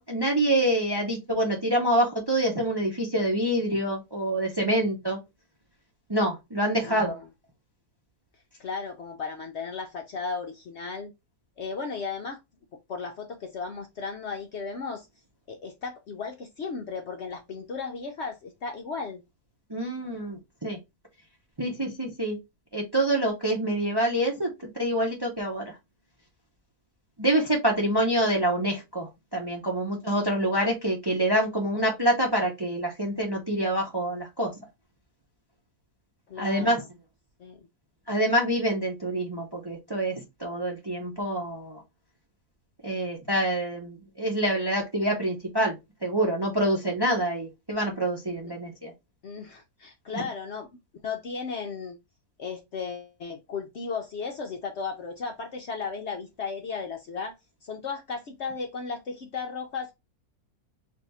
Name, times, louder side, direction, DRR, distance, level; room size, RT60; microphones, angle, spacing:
voice 1, 0.0-5.2 6.1-7.1 19.7-20.8 21.6-22.4 22.7-25.7 27.2-34.5 36.4-36.8 38.1-41.8 42.8-48.9 50.1-50.2, right 1 dB, 25° right, 0.6 m, -26 dB
voice 2, 6.7-7.2 8.6-11.1 11.6-12.4 12.9-15.1 15.5-19.2 36.3-36.9 37.4-37.7 48.4-48.5 49.2-50.7 51.0-52.0 52.4-57.4 57.6-59.9, left 5 dB, 60° left, 0.7 m, -35 dB
3.4 x 2.7 x 4.0 m
omnidirectional pair, 1.6 m